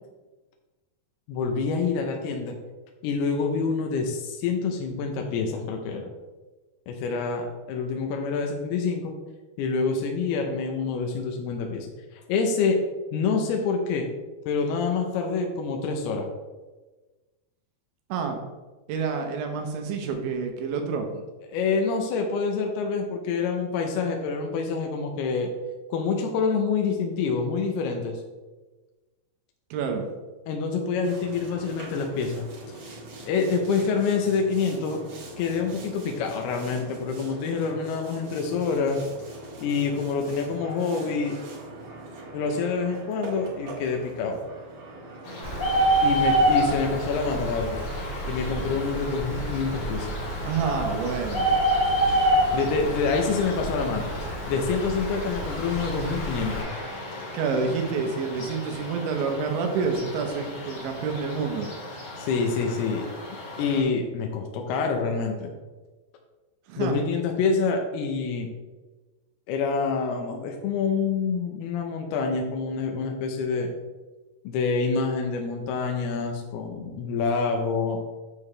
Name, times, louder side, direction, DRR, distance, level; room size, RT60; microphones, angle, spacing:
voice 1, 1.3-2.5 3.0-6.1 6.9-9.1 9.6-12.8 13.1-14.1 14.5-16.3 21.5-25.5 25.9-28.2 30.5-32.8 33.3-35.0 35.4-39.0 39.6-41.4 42.3-44.4 46.0-47.8 48.3-50.2 52.5-54.1 54.5-56.7 62.2-63.1 63.6-65.5 66.8-68.5 69.5-73.7 74.4-78.0, left 5 dB, 75° left, 2 dB, 2.5 m, -27 dB
voice 2, 18.1-18.4 18.9-21.1 29.7-30.0 50.4-51.5 57.3-61.7 66.7-67.0, right 5 dB, 85° right, 4 dB, 3.3 m, -28 dB
Boat Water vehicle, 31.0-45.9, right 1 dB, 50° right, 2.5 m, -42 dB
sound 1, 45.2-63.8, left 1 dB, 45° left, 2.8 m, -39 dB
Bird, 45.4-56.6, right 1 dB, 30° left, 1.4 m, -26 dB
8.5 x 6.9 x 3.3 m, 1.2 s
omnidirectional pair, 5.2 m